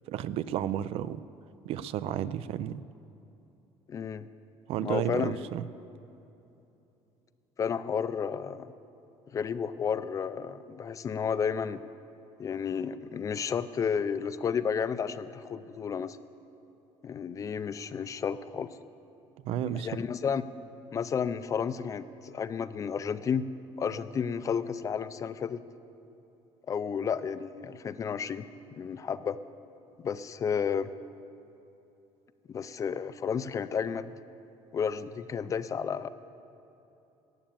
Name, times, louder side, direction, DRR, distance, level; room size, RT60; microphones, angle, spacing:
voice 1, 0.1-1.2 1.6-2.8 4.7-5.6 19.4-19.9, right 11 dB, 60° right, 16 dB, 0.4 m, -32 dB
voice 2, 3.9-4.3 4.8-5.5 7.6-8.7 9.3-11.8 12.4-16.2 17.0-18.7 19.6-20.4 20.9-23.4 23.8-25.6 26.7-28.4 28.7-29.4 30.0-30.9 32.5-34.1 34.7-36.1, left 7 dB, 30° left, 14 dB, 0.4 m, -32 dB
14.5 x 8.8 x 8.7 m, 2.9 s
cardioid pair, 145°, 11 cm